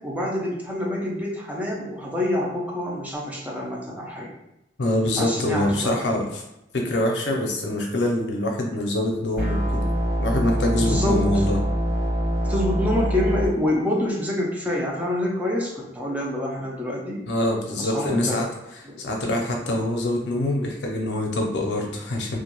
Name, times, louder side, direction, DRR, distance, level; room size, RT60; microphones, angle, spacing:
voice 1, 0.0-4.3 5.2-6.0 10.8-11.4 12.4-17.3 17.8-18.4 18.8-19.0, left 1 dB, 10° right, -3 dB, 0.5 m, -27 dB
voice 2, 4.8-6.4 6.7-9.9 10.2-11.6 17.3-18.5 19.0-22.4, left 1 dB, 75° left, 1 dB, 0.6 m, -24 dB
sound 1, 9.3-13.5, equal, 60° right, 0.8 m, -24 dB
2.4 x 2.2 x 2.9 m, 0.88 s
head